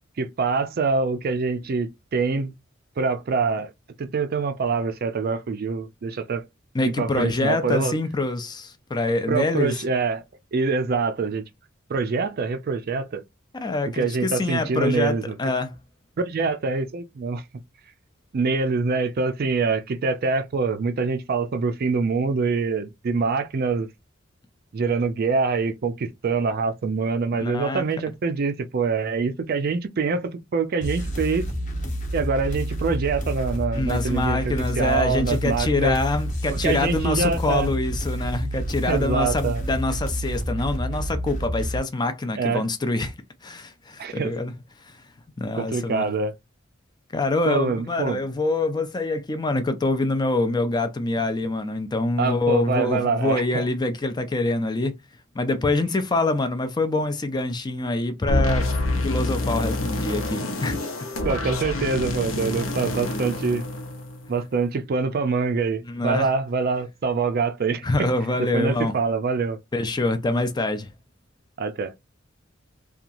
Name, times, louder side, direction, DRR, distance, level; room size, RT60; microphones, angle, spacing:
voice 1, 0.2-2.5 3.0-3.7 4.0-6.4 6.8-7.9 9.3-10.2 10.5-11.4 11.9-13.2 13.9-15.4 16.2-17.4 18.3-23.9 24.7-30.2 30.5-31.5 32.1-36.0 36.5-37.7 38.9-39.6 42.4-42.6 44.0-44.3 45.5-46.3 47.5-48.2 52.2-53.7 61.2-63.6 64.3-68.1 68.4-69.6 71.6-71.9, right 4 dB, 50° right, 0.4 m, -25 dB
voice 2, 6.7-9.8 13.5-15.8 27.3-27.8 33.7-43.1 43.4-44.5 44.8-45.0 45.4-46.1 47.1-54.9 55.3-58.7 59.0-60.8 65.8-66.3 67.8-68.9 69.7-70.9, left 2 dB, 20° left, 0.4 m, -25 dB
sound 1, 30.8-41.8, equal, 40° left, 0.8 m, -29 dB
sound 2, 58.3-64.4, left 2 dB, 90° left, 0.7 m, -27 dB
2.8 x 2.3 x 2.5 m
head